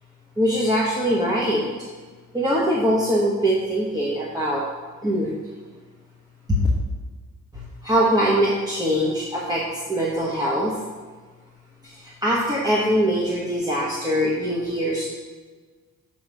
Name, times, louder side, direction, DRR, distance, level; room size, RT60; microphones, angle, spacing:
voice 1, 0.4-1.6 2.3-4.6 5.0-5.3 6.5-6.7 7.5-10.7 11.8-15.1, equal, 10° right, -6 dB, 1.1 m, -22 dB
7.1 x 3.1 x 5.2 m, 1.4 s
cardioid pair, 90°, 30 cm